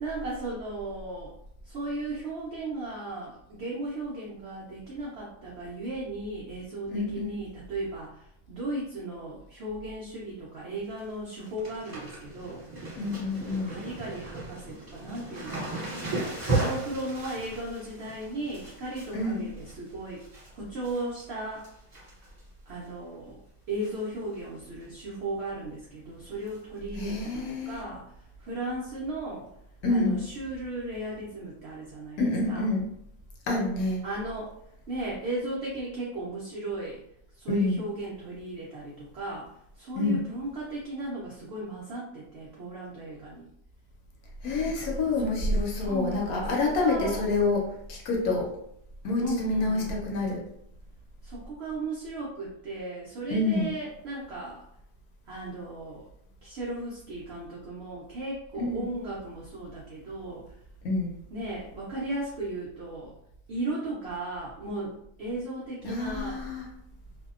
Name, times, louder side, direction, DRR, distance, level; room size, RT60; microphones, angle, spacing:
voice 1, 0.0-1.3 1.6-12.6 13.4-15.7 16.4-20.2 20.5-21.7 22.7-23.4 23.7-28.0 28.4-29.5 29.9-32.2 32.5-32.7 34.0-34.5 34.9-37.0 37.4-43.5 44.5-44.9 45.8-47.2 49.2-49.9 51.2-54.6 55.3-56.0 56.4-60.5 61.3-63.1 63.5-66.4, right 2 dB, 85° right, -5 dB, 0.5 m, -36 dB
voice 2, 6.9-7.3 12.9-13.8 19.1-19.5 26.9-27.8 29.8-30.2 32.2-32.9 33.5-34.0 37.5-37.9 39.9-40.2 44.4-48.5 49.0-50.4 53.3-53.7 58.5-58.8 60.8-61.2 65.8-66.7, left 2 dB, 75° left, -1 dB, 1.0 m, -27 dB
sound 1, 10.7-11.0 11.3-20.5 20.8-21.3 21.6-22.4 22.7-22.8 23.8-24.1 24.3-24.4 24.8-24.9 26.5-26.6 27.3-27.4, right 3 dB, 25° right, 1.1 m, -36 dB
2.6 x 2.1 x 2.3 m, 0.74 s
omnidirectional pair, 1.7 m